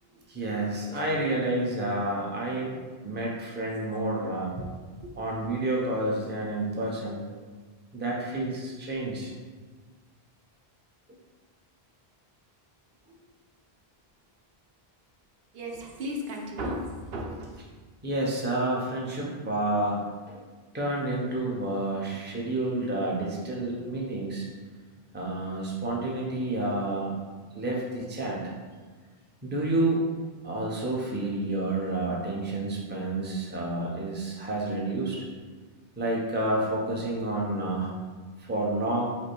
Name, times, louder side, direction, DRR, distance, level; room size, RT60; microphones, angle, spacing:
voice 1, 0.3-2.7 3.0-4.5 5.2-7.3 7.9-9.3 18.0-20.0 20.3-20.4 20.7-24.5 25.1-27.1 27.5-28.5 29.4-30.1 30.4-35.2 36.0-37.9 38.4-39.0, right 2 dB, 10° right, -3 dB, 0.6 m, -29 dB
voice 2, 4.1-4.7 15.5-17.5, equal, 70° right, 0 dB, 0.8 m, -35 dB
5.3 x 2.2 x 4.4 m, 1.4 s
omnidirectional pair, 1.1 m